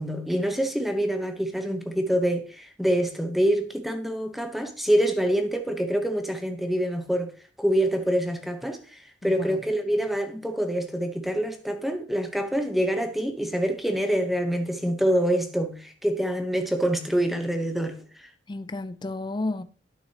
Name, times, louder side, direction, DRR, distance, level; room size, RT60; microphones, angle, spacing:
voice 1, 0.0-7.3 7.6-18.3, equal, ahead, 0.8 m, -26 dB
voice 2, 9.2-9.6 18.5-19.6, left 2 dB, 25° left, 0.5 m, -32 dB
11.0 x 6.1 x 2.8 m
head